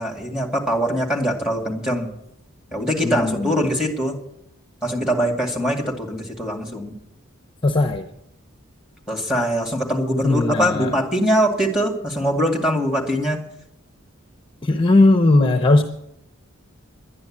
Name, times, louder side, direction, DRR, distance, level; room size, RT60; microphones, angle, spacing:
voice 1, 0.0-2.1 2.7-4.2 4.8-6.9 9.1-13.4, equal, 5° right, 1 dB, 2.1 m, -22 dB
voice 2, 3.0-3.6 7.6-8.0 10.2-10.9 14.6-15.8, left 2 dB, 25° left, 4 dB, 0.7 m, -17 dB
11.5 x 10.5 x 8.6 m, 0.80 s
head